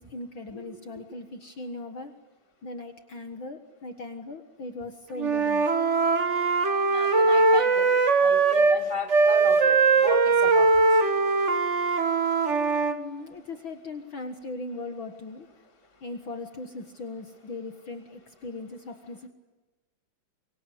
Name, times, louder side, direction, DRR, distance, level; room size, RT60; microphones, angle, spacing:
voice 1, 0.0-2.1 2.6-5.7 13.0-15.5 16.0-19.3, left 2 dB, 50° left, 7 dB, 1.9 m, -39 dB
Wind instrument woodwind instrument, 5.2-8.8 9.1-13.0, right 4 dB, 50° right, 0.8 m, -21 dB
voice 2, 6.9-7.9 8.2-9.8 10.0-10.7, left 2 dB, 15° right, 3 dB, 1.6 m, -34 dB
24.5 x 24.0 x 8.5 m, 1.2 s
omnidirectional pair, 3.5 m